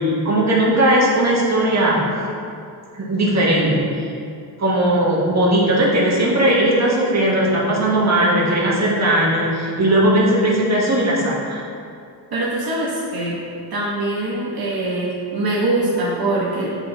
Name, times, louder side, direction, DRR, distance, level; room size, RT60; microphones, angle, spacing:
voice 1, 0.0-2.0 2.9-3.9 4.6-11.6, right 1 dB, 40° right, -5 dB, 1.5 m, -18 dB
voice 2, 12.3-13.4 13.7-16.7, right 2 dB, 60° right, -7 dB, 1.3 m, -23 dB
8.1 x 4.0 x 4.0 m, 2.5 s
cardioid pair, 90°, 42 cm